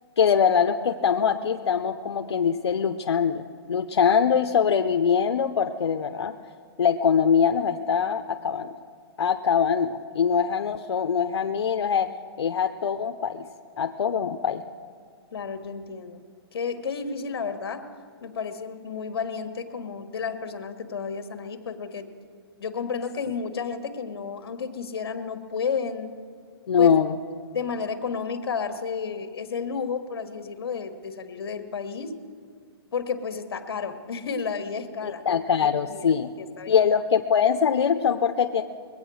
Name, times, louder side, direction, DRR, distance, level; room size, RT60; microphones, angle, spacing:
voice 1, 0.2-6.3 6.8-8.7 9.2-12.1 12.4-13.5 13.8-14.6 26.7-27.2 35.0-36.3 36.7-38.6, left 7 dB, 85° left, 6 dB, 0.7 m, -23 dB
voice 2, 15.3-16.2 16.5-22.1 22.6-26.1 26.8-26.9 27.5-32.2 32.9-35.2 35.6-36.0 36.4-36.8, left 5 dB, 60° left, 8 dB, 1.4 m, -32 dB
22.0 x 8.6 x 6.3 m, 2.2 s
hypercardioid pair, 175°, 14 cm